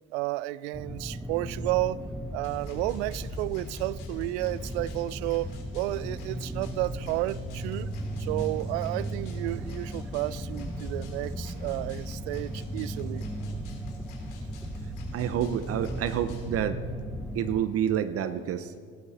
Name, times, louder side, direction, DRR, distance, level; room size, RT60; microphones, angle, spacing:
voice 1, 0.1-2.0 2.3-7.9 8.2-13.3, right 18 dB, 80° right, 20 dB, 0.5 m, -32 dB
sound 1, 0.7-17.6, right 1 dB, ahead, 1.1 m, -36 dB
sound 2, 2.4-16.5, left 3 dB, 70° left, 3.5 m, -47 dB
voice 2, 15.1-16.8 17.3-18.8, right 10 dB, 45° right, 12 dB, 0.7 m, -28 dB
18.5 x 12.5 x 4.2 m, 2.1 s
supercardioid pair, 90°, 32 cm